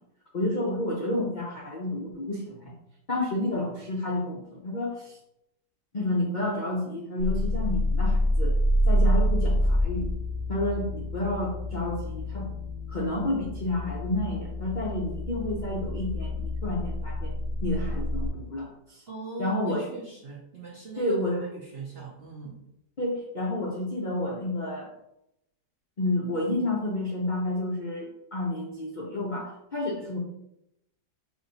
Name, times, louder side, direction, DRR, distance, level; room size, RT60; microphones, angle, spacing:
voice 1, 0.3-2.7 3.1-5.2 5.9-8.5 8.9-10.1 10.5-12.5 12.9-17.3 17.6-19.0 19.4-19.9 21.0-21.4 23.0-24.9 26.0-30.2, left 1 dB, 65° left, -3 dB, 0.4 m, -30 dB
sound 1, 7.2-18.3, equal, 25° left, 1.8 m, -27 dB
voice 2, 19.1-22.6, right 3 dB, 50° right, -4 dB, 0.7 m, -41 dB
4.8 x 2.7 x 4.0 m, 0.82 s
omnidirectional pair, 1.9 m